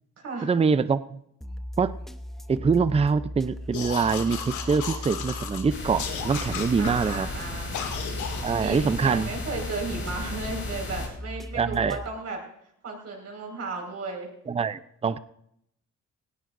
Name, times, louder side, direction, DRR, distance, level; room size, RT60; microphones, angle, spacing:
voice 1, 0.4-1.2 1.8-1.9 2.5-7.3 8.4-9.3 11.5-12.0 14.5-15.2, right 5 dB, 20° right, 14 dB, 0.5 m, -24 dB
sound 1, 1.4-12.1, left 1 dB, ahead, 1.0 m, -38 dB
sound 2, 3.7-5.6 6.0-7.2 7.7-8.5, left 7 dB, 75° left, 2.4 m, -34 dB
sound 3, 5.7-11.1, left 2 dB, 40° left, 6.5 m, -36 dB
voice 2, 6.8-7.8 8.5-12.4 12.8-14.3, right 3 dB, 55° right, 1 dB, 5.2 m, -34 dB
19.0 x 16.5 x 2.6 m, 0.73 s
cardioid pair, 90°, 30 cm